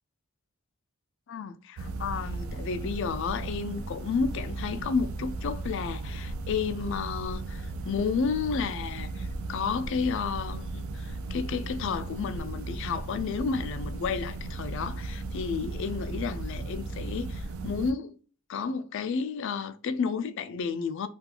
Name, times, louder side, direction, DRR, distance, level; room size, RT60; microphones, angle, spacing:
voice 1, 1.3-18.2 18.5-21.1, left 5 dB, 60° left, 0.3 m, -32 dB
sound 1, 1.8-17.9, right 3 dB, 70° right, 0.3 m, -36 dB
2.5 x 2.3 x 2.7 m
head